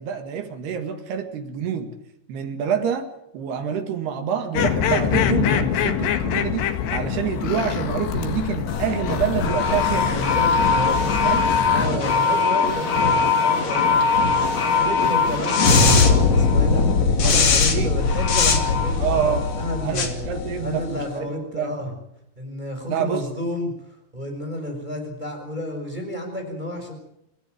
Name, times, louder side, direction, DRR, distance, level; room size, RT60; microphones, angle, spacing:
voice 1, 0.0-1.9 2.3-6.7 6.9-10.4 11.2-11.4 17.2-17.9 19.0-19.5 19.8-21.7 22.9-23.2, right 8 dB, 60° right, 8 dB, 3.7 m, -27 dB
sound 1, 4.5-11.9, left 8 dB, 65° left, 3.6 m, -25 dB
sound 2, 8.7-21.1, left 4 dB, 40° left, 3.2 m, -20 dB
voice 2, 10.1-14.1 14.6-16.9 17.2-20.3 20.6-21.9 22.4-23.7 24.1-26.9, left 1 dB, 10° right, 3 dB, 5.4 m, -31 dB
27.0 x 15.0 x 9.3 m, 0.80 s
omnidirectional pair, 5.6 m